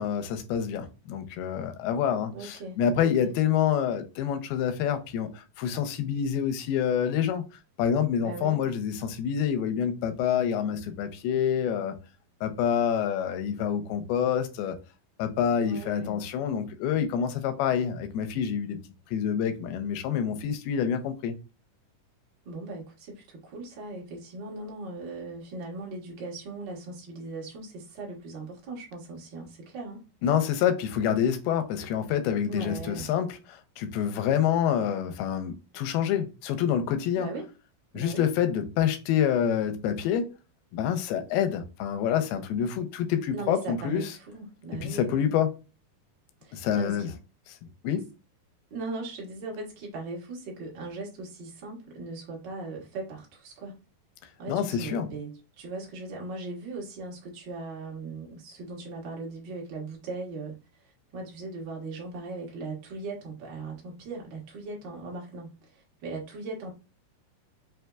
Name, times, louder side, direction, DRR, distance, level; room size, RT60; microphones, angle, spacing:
voice 1, 0.0-7.4 7.8-11.9 12.4-14.8 15.2-18.8 19.1-21.4 30.2-37.3 37.9-40.4 40.7-44.1 44.8-45.5 46.5-47.1 47.8-48.1 54.5-55.1, left 8 dB, 90° left, 2.6 m, -27 dB
voice 2, 2.3-3.3 8.2-8.6 15.6-16.2 22.4-30.1 32.5-33.1 37.1-37.5 37.9-38.2 43.3-45.4 46.4-47.1 48.7-53.8 54.4-60.6 61.1-66.7, right 3 dB, 55° right, 1.2 m, -39 dB
6.0 x 2.8 x 2.3 m
omnidirectional pair, 4.3 m